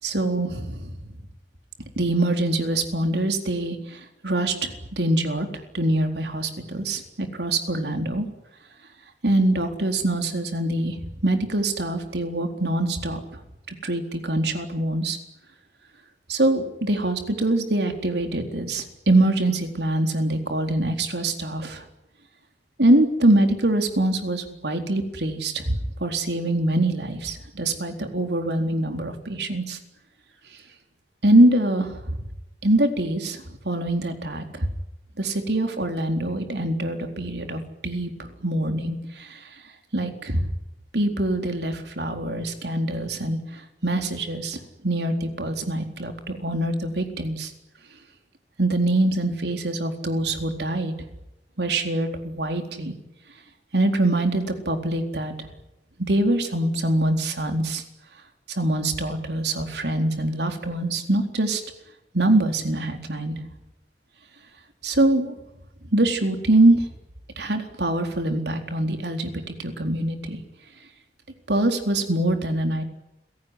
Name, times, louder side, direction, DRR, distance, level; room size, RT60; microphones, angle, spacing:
voice 1, 0.0-1.0 2.0-5.5 5.7-8.3 9.2-13.2 13.8-15.2 16.3-21.8 22.8-29.8 31.2-32.2 32.6-34.7 35.2-39.4 39.9-40.4 40.9-47.5 48.6-50.9 51.6-52.9 53.7-55.5 56.0-57.8 58.5-61.6 62.1-63.3 64.8-65.3 65.9-66.9 67.4-70.4 71.5-72.8, right 1 dB, 75° right, 5 dB, 4.1 m, -24 dB
30.0 x 17.5 x 10.0 m, 0.90 s
head